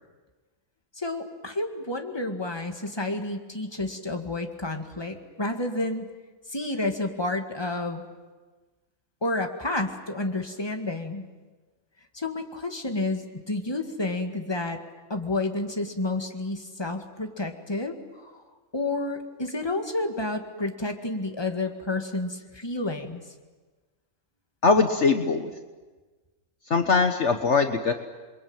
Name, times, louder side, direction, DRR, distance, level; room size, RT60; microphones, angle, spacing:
voice 1, 1.0-6.1 6.5-8.1 9.2-11.3 12.1-14.8 15.1-18.3 18.7-23.2, left 2 dB, 20° left, 4 dB, 2.2 m, -30 dB
voice 2, 24.6-25.5 26.7-27.9, left 4 dB, 55° left, 6 dB, 1.5 m, -21 dB
28.5 x 23.0 x 9.0 m, 1.3 s
omnidirectional pair, 1.5 m